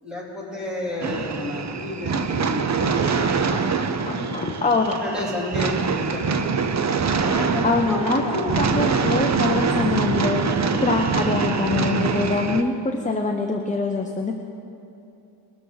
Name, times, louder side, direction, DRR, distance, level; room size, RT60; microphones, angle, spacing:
voice 1, 0.0-3.2 3.7-6.7 7.2-8.8, left 1 dB, ahead, -6 dB, 3.1 m, -31 dB
sound 1, 1.0-12.6, right 5 dB, 35° right, 0.5 m, -24 dB
voice 2, 2.9-5.0 7.6-8.2 8.6-14.3, left 3 dB, 15° left, 3 dB, 0.5 m, -25 dB
20.0 x 13.0 x 3.9 m, 2.8 s
wide cardioid pair, 170°, 50 cm